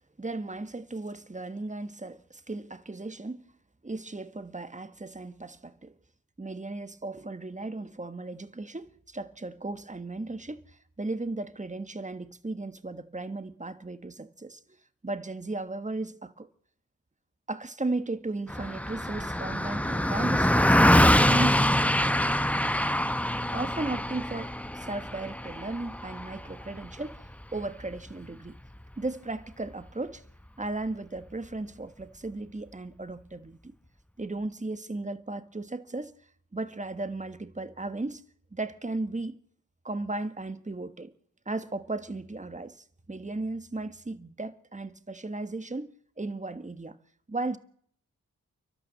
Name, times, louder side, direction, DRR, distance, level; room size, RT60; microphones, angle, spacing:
voice 1, 0.2-3.4 3.8-5.9 6.4-14.6 15.0-16.5 17.5-22.4 23.5-27.2 27.5-28.6 29.0-30.2 30.6-33.7 34.2-36.1 36.5-38.2 38.5-39.4 39.8-41.1 41.4-47.0 47.3-47.6, right 2 dB, 25° right, 1.6 m, -36 dB
Car passing by, 18.5-28.1, left 1 dB, 5° left, 1.0 m, -25 dB
29.5 x 12.0 x 7.5 m
cardioid pair, 45°, 31 cm